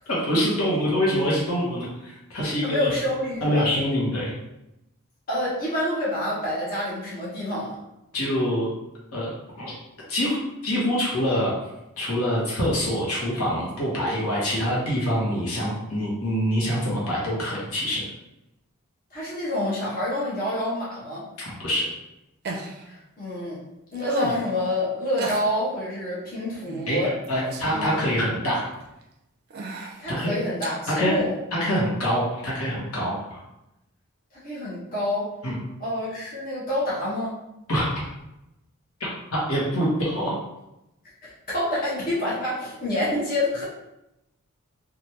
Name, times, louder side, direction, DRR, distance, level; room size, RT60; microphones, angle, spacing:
voice 1, 0.1-2.9 3.4-4.3 8.1-8.7 9.1-9.7 10.1-10.4 10.6-11.5 12.0-18.0 21.4-21.8 26.9-27.0 27.3-28.7 30.1-30.3 30.9-31.1 31.5-33.4 35.4-35.6 37.7-37.9 39.0-40.4, equal, 85° left, -5 dB, 1.0 m, -25 dB
voice 2, 2.6-3.7 5.3-7.8 19.1-21.2 22.8-23.6 23.9-27.1 30.0-31.3 34.4-35.3 35.8-37.3 41.2-43.6, left 1 dB, 40° left, -8 dB, 1.0 m, -27 dB
sound 1, 22.4-22.8 23.9-24.5 25.2-25.4 26.7-26.9 27.2-28.1 28.8-28.9 29.5-30.0 30.6-30.7 32.4-32.5, right 3 dB, 45° right, 0.4 m, -32 dB
3.1 x 2.4 x 2.8 m, 0.90 s
head